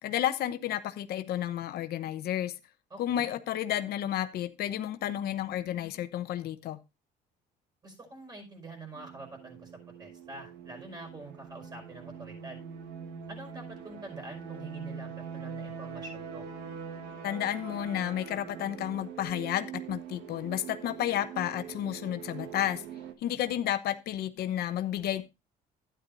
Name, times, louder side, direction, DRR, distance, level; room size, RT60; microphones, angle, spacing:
voice 1, 0.0-2.6 3.0-6.8 17.2-22.8 23.2-25.2, left 11 dB, 70° left, 0.9 m, -31 dB
voice 2, 2.9-3.3 7.8-9.7 10.0-12.6 13.3-16.5, right 2 dB, 25° right, 5.4 m, -46 dB
sound 1, 8.9-23.1, right 7 dB, 80° right, 1.5 m, -43 dB
12.0 x 10.0 x 2.6 m
cardioid pair, 110°, 17 cm